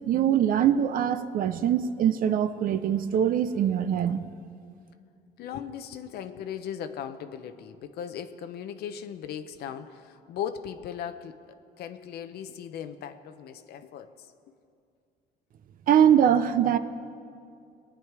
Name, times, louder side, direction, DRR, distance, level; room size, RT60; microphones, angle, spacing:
voice 1, 0.0-4.3 15.9-16.8, right 9 dB, 55° right, 11 dB, 0.6 m, -23 dB
voice 2, 5.4-11.4 11.8-14.3, left 8 dB, 70° left, 9 dB, 0.7 m, -38 dB
20.0 x 9.0 x 4.7 m, 2.4 s
cardioid pair, 110°, 17 cm